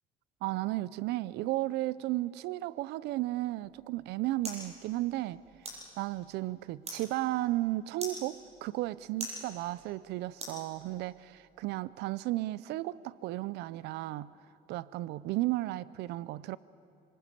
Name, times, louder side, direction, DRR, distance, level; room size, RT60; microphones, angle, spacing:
voice 1, 0.4-5.4 6.0-14.3 14.7-16.6, right 17 dB, 85° right, 19 dB, 0.5 m, -34 dB
sound 1, 3.6-11.2, right 1 dB, 40° right, 7.8 m, -47 dB
26.0 x 24.5 x 6.9 m, 3.0 s
cardioid pair, 110°, 17 cm